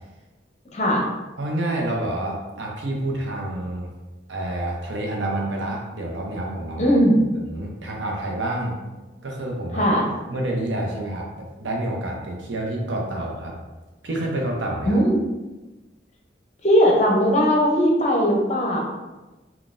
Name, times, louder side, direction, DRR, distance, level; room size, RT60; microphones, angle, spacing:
voice 1, 0.7-1.0 6.8-7.2 9.7-10.1 14.9-15.2 16.6-18.8, equal, 40° left, -1 dB, 0.6 m, -18 dB
voice 2, 1.4-3.9 4.3-6.9 7.4-8.8 9.2-9.9 10.3-13.6 14.0-15.0, right 1 dB, 90° right, -1 dB, 0.7 m, -28 dB
3.8 x 2.3 x 2.5 m, 1.1 s
head